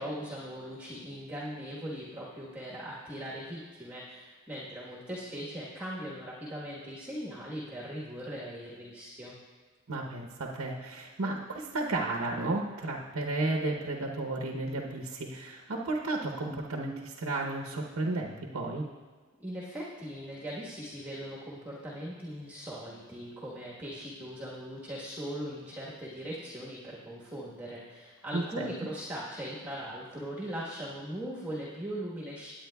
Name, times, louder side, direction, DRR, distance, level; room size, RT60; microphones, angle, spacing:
voice 1, 0.0-9.3 19.4-32.5, equal, 10° right, -6 dB, 1.3 m, -40 dB
voice 2, 9.9-18.8 28.3-28.7, right 2 dB, 85° right, 0 dB, 0.8 m, -33 dB
18.5 x 8.8 x 2.3 m, 1.5 s
head